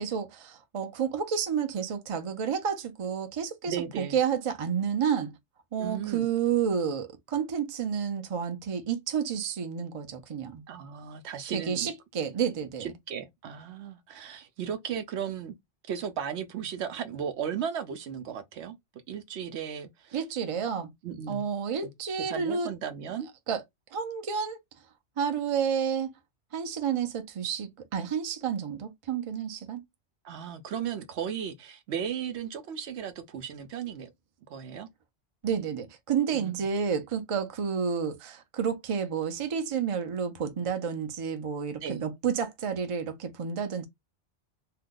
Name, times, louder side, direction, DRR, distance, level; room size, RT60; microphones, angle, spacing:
voice 1, 0.0-5.3 5.7-10.6 11.5-12.9 20.1-20.9 21.3-22.7 23.5-23.6 23.9-24.6 25.2-26.1 26.5-29.8 35.4-43.8, right 7 dB, 40° right, 0.4 m, -30 dB
voice 2, 3.6-4.2 5.8-6.3 10.7-11.9 12.8-15.5 15.9-18.8 19.1-20.2 21.0-21.5 21.8-21.9 22.3-23.3 30.2-34.1 34.5-34.9 36.3-36.6 41.8-42.0, right 8 dB, 70° right, 0.8 m, -36 dB
2.7 x 2.2 x 3.6 m
omnidirectional pair, 1.2 m